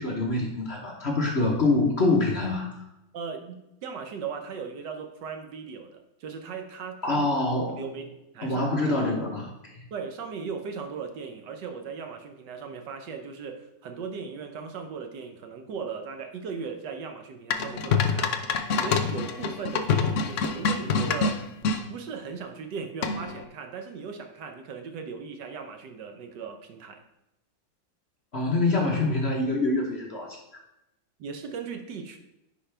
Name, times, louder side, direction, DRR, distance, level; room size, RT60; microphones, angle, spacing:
voice 1, 0.0-2.8 7.0-7.8 8.4-9.9 28.3-30.4, left 2 dB, 40° left, 0 dB, 1.1 m, -25 dB
voice 2, 3.1-7.3 7.7-8.1 8.3-9.1 9.9-18.4 18.7-21.4 21.9-27.0 31.2-32.2, right 5 dB, 70° right, 6 dB, 1.4 m, -38 dB
sound 1, 17.5-21.8 23.0-23.4, left 5 dB, 80° left, 0.6 m, -26 dB
10.0 x 5.1 x 3.3 m, 0.89 s
omnidirectional pair, 2.0 m